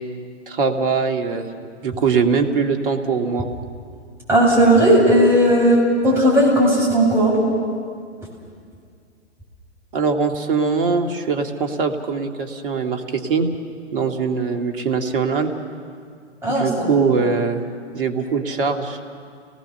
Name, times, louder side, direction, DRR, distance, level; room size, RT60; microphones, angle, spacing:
voice 1, 0.5-1.5 1.8-3.5 9.9-13.5 13.9-15.5 16.5-17.7 17.9-19.0, right 5 dB, 50° right, 5 dB, 2.1 m, -22 dB
voice 2, 4.3-7.4 16.4-16.7, right 1 dB, 5° right, -5 dB, 7.3 m, -15 dB
30.0 x 19.5 x 6.9 m, 2.2 s
figure-of-eight pair, 115°, 35 cm